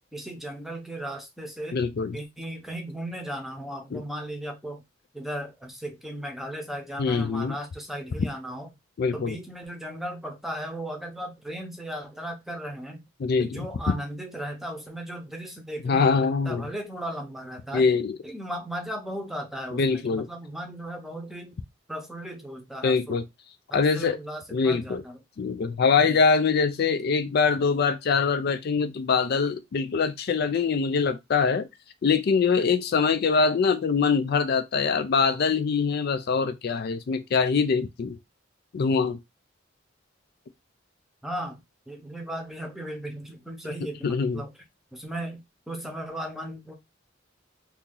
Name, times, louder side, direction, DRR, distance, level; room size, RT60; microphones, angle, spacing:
voice 1, 0.1-1.8 2.1-4.8 5.1-8.7 9.1-13.0 13.4-17.9 18.2-21.5 21.9-23.2 23.7-25.2 25.9-26.2 41.2-44.5 44.9-46.7, right 1 dB, ahead, 0.7 m, -36 dB
voice 2, 1.7-2.2 3.9-4.0 7.0-7.6 9.0-9.4 13.2-13.7 15.8-16.6 17.7-18.2 19.7-20.3 22.8-23.2 23.7-24.2 24.5-25.0 25.4-31.7 32.0-38.2 38.7-39.2 44.0-44.4, left 5 dB, 55° left, 0.4 m, -23 dB
2.8 x 2.7 x 3.7 m
head